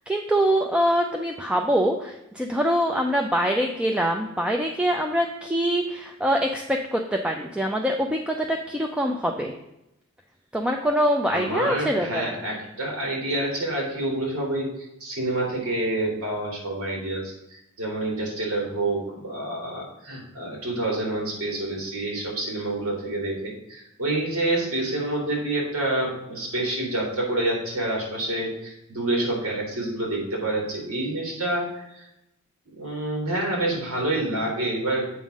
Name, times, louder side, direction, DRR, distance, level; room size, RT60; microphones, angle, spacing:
voice 1, 0.1-9.5 10.5-12.4, equal, 5° right, 2 dB, 0.5 m, -24 dB
voice 2, 11.3-32.1 32.7-35.1, right 1 dB, 85° right, -1 dB, 2.9 m, -28 dB
8.0 x 3.8 x 6.2 m, 0.86 s
head